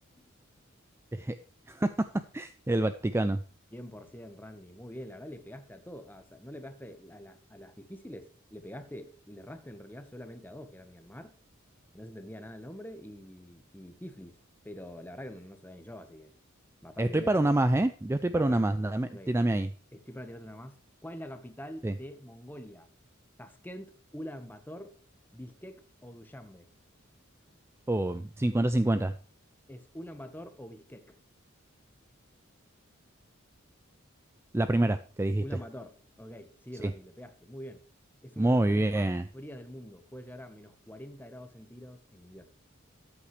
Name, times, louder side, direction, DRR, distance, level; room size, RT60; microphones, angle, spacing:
voice 1, 1.7-2.1 2.3-3.4 17.0-19.7 21.8-21.9 27.9-29.1 34.5-35.4 36.8-36.9 38.4-39.2, right 1 dB, 10° right, 0.4 m, -27 dB
voice 2, 3.7-11.3 11.9-14.4 14.6-16.3 16.8-17.4 18.3-18.6 19.0-19.3 19.9-20.8 21.0-22.9 23.4-24.9 25.3-26.7 29.7-31.2 35.4-37.8 38.2-39.1 39.3-42.5, equal, 10° left, 1.1 m, -45 dB
13.5 x 8.5 x 3.2 m
head